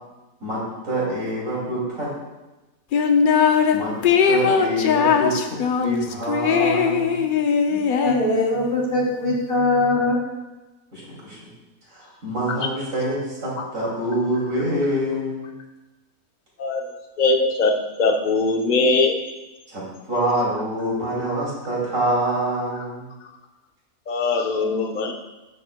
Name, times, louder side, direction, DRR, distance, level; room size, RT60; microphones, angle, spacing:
voice 1, 0.4-2.1 3.7-3.9 4.3-7.2 10.9-11.3 11.9-15.5 19.7-23.1 24.6-24.9, right 1 dB, 65° right, -6 dB, 3.0 m, -26 dB
sound 1, 2.9-3.8 4.0-8.7, left 6 dB, 90° left, 0.4 m, -20 dB
voice 2, 7.7-10.2, left 2 dB, 65° left, -3 dB, 2.3 m, -22 dB
voice 3, 17.2-17.7 18.0-19.1 24.1-25.1, left 3 dB, 45° left, 3 dB, 0.6 m, -20 dB
9.4 x 6.9 x 2.2 m, 1.1 s
omnidirectional pair, 1.5 m